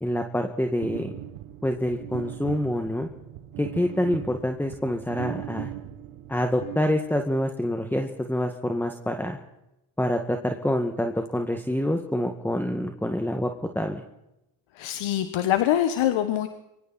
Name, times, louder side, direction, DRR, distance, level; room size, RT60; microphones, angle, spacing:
voice 1, 0.0-1.1 1.6-3.1 3.6-5.7 6.3-9.4 10.0-14.0, left 1 dB, 5° left, 4 dB, 2.1 m, -26 dB
sound 1, 0.8-7.4, right 14 dB, 75° right, 1.6 m, -39 dB
voice 2, 14.8-16.5, left 12 dB, 70° left, 9 dB, 1.5 m, -24 dB
26.5 x 24.0 x 4.4 m, 0.89 s
supercardioid pair, 65°, 49 cm